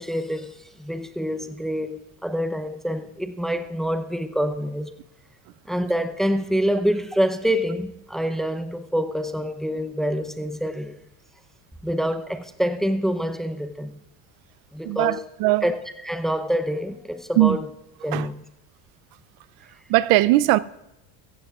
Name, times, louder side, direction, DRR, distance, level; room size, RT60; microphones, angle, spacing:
voice 1, 0.0-4.9 5.7-10.9 11.8-13.9 14.7-15.2 15.6-15.8 16.0-17.7 18.0-18.3, equal, ahead, 0.6 m, -26 dB
voice 2, 14.8-15.7 17.4-17.6 18.1-18.3 19.9-20.6, right 17 dB, 65° right, 0.5 m, -19 dB
15.5 x 15.0 x 2.4 m
cardioid pair, 125°, 39 cm